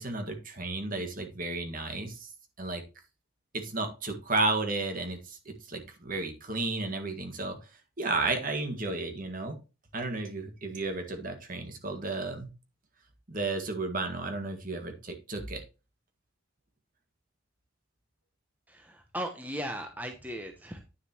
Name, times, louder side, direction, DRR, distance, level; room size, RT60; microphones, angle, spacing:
voice 1, 0.0-2.3 2.6-2.8 3.5-7.6 8.0-9.6 9.9-12.5 13.3-15.6, right 2 dB, 45° right, 6 dB, 1.6 m, -33 dB
voice 2, 18.7-20.9, equal, 10° right, 5 dB, 0.9 m, -37 dB
9.7 x 6.7 x 2.9 m, 0.30 s
head